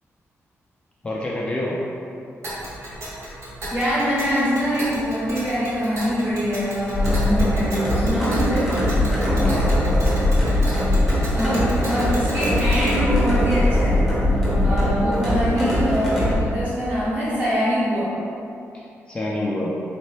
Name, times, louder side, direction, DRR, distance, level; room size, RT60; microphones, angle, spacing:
voice 1, 1.0-1.8 9.2-9.7 19.1-19.8, left 1 dB, 20° left, -5 dB, 0.3 m, -27 dB
Tick, 2.4-13.0, right 1 dB, 60° right, 0.9 m, -35 dB
voice 2, 3.7-8.7 11.3-14.1 14.6-18.1, equal, 30° right, -9 dB, 1.2 m, -24 dB
sound 1, 6.9-16.4, left 1 dB, 5° right, 0.9 m, -21 dB
4.2 x 2.7 x 3.2 m, 2.6 s
wide cardioid pair, 180°, 5 cm